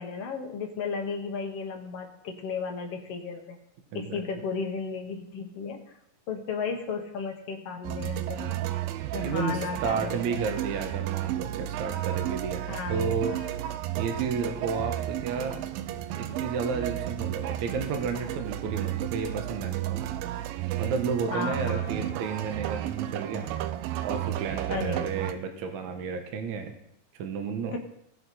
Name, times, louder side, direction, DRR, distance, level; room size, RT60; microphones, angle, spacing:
voice 1, 0.0-3.6 3.9-5.8 6.3-8.5 9.1-10.2 12.7-13.5 21.3-22.1 24.7-25.1 27.7-27.8, left 5 dB, 60° left, 4 dB, 1.6 m, -34 dB
sound 1, 7.8-25.3, right 13 dB, 85° right, 2.4 m, -33 dB
voice 2, 9.2-13.4 14.0-15.6 16.1-20.1 20.8-23.5 24.0-26.7 27.2-27.7, right 5 dB, 65° right, 5 dB, 2.3 m, -32 dB
18.5 x 6.6 x 4.2 m, 0.75 s
omnidirectional pair, 4.0 m